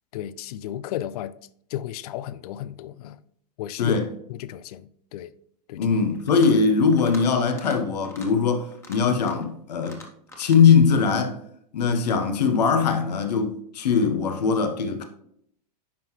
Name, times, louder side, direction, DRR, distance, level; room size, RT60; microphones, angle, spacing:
voice 1, 0.1-1.3 1.7-3.2 3.6-4.0 4.3-5.3 5.7-5.9, left 12 dB, 65° left, 0.5 m, -33 dB
voice 2, 5.8-10.0 10.4-11.4 11.7-15.0, left 5 dB, 80° left, 1.1 m, -21 dB
sound 1, 6.2-6.6 6.9-7.2 7.5-7.8 8.0-8.3 8.7-9.5 9.8-10.6, left 2 dB, 10° left, 1.3 m, -44 dB
10.0 x 3.9 x 3.1 m
hypercardioid pair, 115°, 21 cm